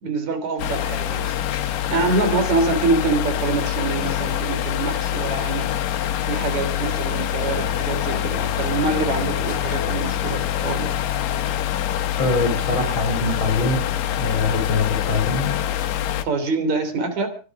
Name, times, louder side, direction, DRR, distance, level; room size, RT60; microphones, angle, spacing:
voice 1, 0.0-5.7 6.2-10.9 16.2-17.3, right 3 dB, 60° right, 8 dB, 4.6 m, -25 dB
sound 1, 0.6-16.2, left 11 dB, 90° left, 2.8 m, -25 dB
voice 2, 12.2-13.9 14.2-15.6, left 3 dB, 40° left, 5 dB, 3.8 m, -23 dB
24.0 x 11.0 x 4.8 m, 0.38 s
omnidirectional pair, 3.7 m